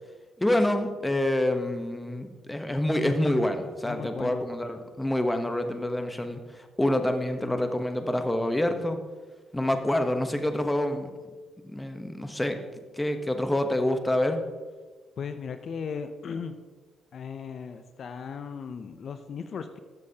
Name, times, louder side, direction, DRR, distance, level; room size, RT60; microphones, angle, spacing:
voice 1, 0.4-6.4 6.8-9.0 9.5-11.1 11.6-12.6 13.0-14.4, left 1 dB, 10° left, 7 dB, 0.9 m, -27 dB
voice 2, 3.8-4.4 15.2-16.5 17.1-19.8, left 6 dB, 55° left, 9 dB, 0.5 m, -37 dB
13.0 x 7.3 x 2.8 m, 1.4 s
cardioid pair, 90°, 0 cm